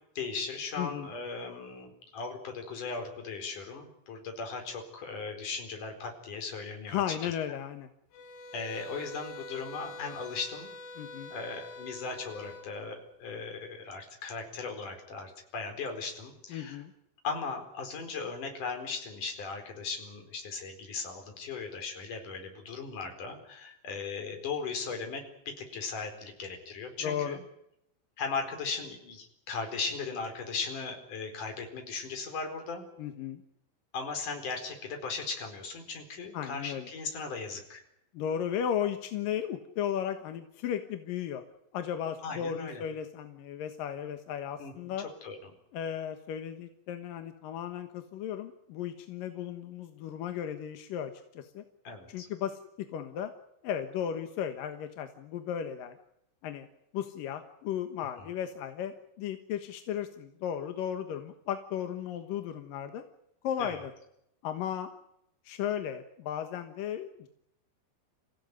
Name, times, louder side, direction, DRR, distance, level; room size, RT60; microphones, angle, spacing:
voice 1, 0.2-7.3 8.5-10.7 11.3-16.8 17.2-27.4 28.2-32.8 33.9-37.8 42.2-42.8 44.6-45.6 51.8-52.3 58.2-58.3 63.6-63.8, left 4 dB, 45° left, 4 dB, 5.8 m, -38 dB
voice 2, 0.8-1.1 6.9-7.9 11.0-11.3 16.5-16.9 27.0-27.4 33.0-33.4 36.3-36.9 38.1-41.4 41.7-45.1 45.7-51.6 52.1-53.3 53.6-56.0 56.4-56.7 56.9-63.0 63.4-63.9 64.4-64.9 65.4-67.3, left 9 dB, 65° left, 7 dB, 2.5 m, -35 dB
sound 1, 8.1-12.7, left 2 dB, 85° left, 4.5 m, -45 dB
28.0 x 16.0 x 9.7 m, 0.80 s
omnidirectional pair, 5.3 m